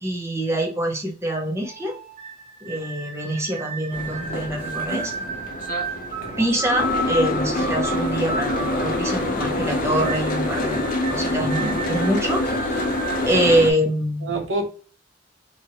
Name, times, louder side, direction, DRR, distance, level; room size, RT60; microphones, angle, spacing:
voice 1, 0.0-2.0 2.6-5.1 6.4-10.8 11.1-12.8 13.3-14.3, right 1 dB, 15° right, 0.7 m, -24 dB
sound 1, 1.6-13.3, right 2 dB, 35° right, 1.1 m, -33 dB
Boat Water vehicle, 3.9-13.7, left 1 dB, 50° left, 0.5 m, -26 dB
voice 2, 6.2-6.6 13.3-13.6 14.2-14.7, right 2 dB, 90° right, 0.7 m, -29 dB
2.9 x 2.6 x 2.7 m
head